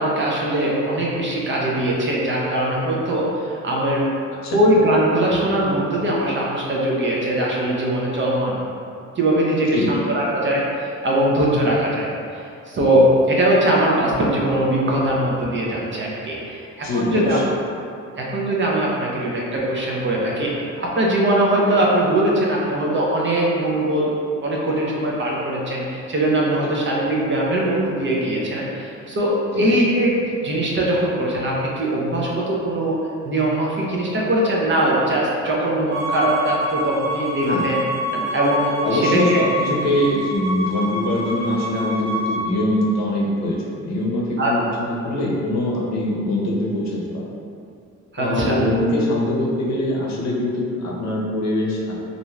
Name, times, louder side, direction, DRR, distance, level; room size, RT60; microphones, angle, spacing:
voice 1, 0.0-4.0 4.5-8.6 9.2-12.1 12.3-17.4 18.2-24.1 24.4-37.8 38.1-39.4 44.4-44.5 48.1-48.6, right 1 dB, 40° right, -4 dB, 0.6 m, -21 dB
voice 2, 16.8-17.4 26.6-26.7 29.5-29.6 37.4-37.7 38.8-47.2 48.2-51.9, left 1 dB, 65° left, -3 dB, 0.7 m, -23 dB
Bowed string instrument, 35.9-42.4, equal, 75° right, 0.8 m, -27 dB
2.5 x 2.2 x 3.1 m, 2.5 s
cardioid pair, 90°, 30 cm